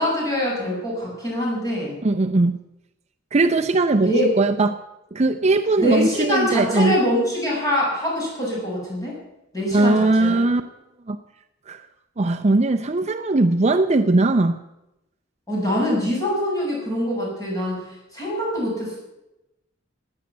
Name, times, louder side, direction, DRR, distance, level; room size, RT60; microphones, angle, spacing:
voice 1, 0.0-2.0 4.0-4.3 5.8-9.2 9.5-10.4 15.5-17.8 18.1-19.0, equal, 20° left, -4 dB, 7.4 m, -24 dB
voice 2, 2.0-2.6 3.3-4.8 5.1-7.0 9.7-10.6 11.1-11.2 11.7-11.9 12.2-14.6, right 2 dB, 35° right, 7 dB, 0.6 m, -19 dB
15.5 x 9.9 x 8.3 m, 0.92 s
head